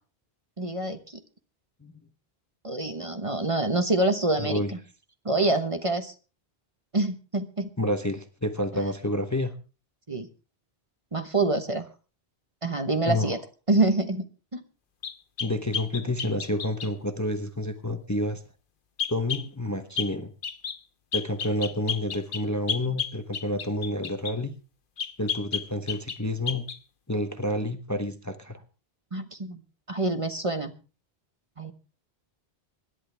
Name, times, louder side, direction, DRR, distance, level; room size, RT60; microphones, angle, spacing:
voice 1, 0.6-1.2 2.6-4.6 5.2-6.1 6.9-7.7 8.7-8.8 10.1-10.3 11.1-11.8 12.6-13.4 13.7-14.2 14.5-14.6 29.1-29.6 29.9-30.7 31.6-31.7, right 2 dB, 30° right, 7 dB, 1.2 m, -26 dB
voice 2, 4.4-4.7 7.8-9.5 13.1-13.4 15.4-18.4 19.1-20.3 21.1-24.5 25.2-26.7 27.1-28.6, left 1 dB, 15° left, 7 dB, 1.0 m, -29 dB
sound 1, 15.0-16.9 19.0-19.5 20.0-20.1 20.4-20.8 21.1-24.4 25.0-26.2 26.5-26.8, left 7 dB, 55° left, 1.0 m, -32 dB
25.5 x 11.0 x 3.4 m, 0.35 s
omnidirectional pair, 1.1 m